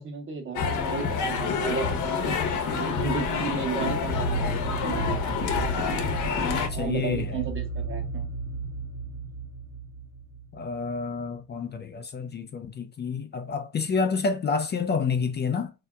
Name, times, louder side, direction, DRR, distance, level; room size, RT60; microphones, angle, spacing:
voice 1, 0.0-2.4 2.7-4.5 4.8-5.2 6.3-8.3, right 5 dB, 45° right, 1.2 m, -34 dB
sound 1, 0.6-6.7, left 5 dB, 75° left, 0.8 m, -28 dB
sound 2, 3.7-11.0, right 3 dB, 60° right, 1.2 m, -34 dB
voice 2, 6.6-7.4 10.5-15.7, left 5 dB, 35° left, 0.4 m, -29 dB
3.4 x 2.8 x 2.3 m
cardioid pair, 90°, 30 cm